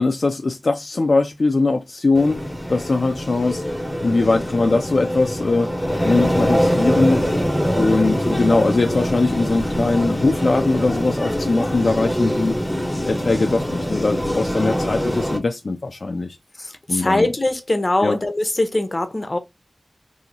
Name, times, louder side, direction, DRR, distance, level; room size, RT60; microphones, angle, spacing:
voice 1, 0.0-2.4 2.7-3.6 4.0-7.4 7.7-12.6 13.1-16.4 16.9-17.3 18.0-18.2, left 3 dB, 65° left, 0.4 m, -21 dB
sound 1, 2.1-15.4, equal, 5° left, 1.2 m, -23 dB
voice 2, 16.6-19.4, left 2 dB, 40° left, 0.8 m, -22 dB
2.9 x 2.7 x 3.9 m
wide cardioid pair, 60°, 0 cm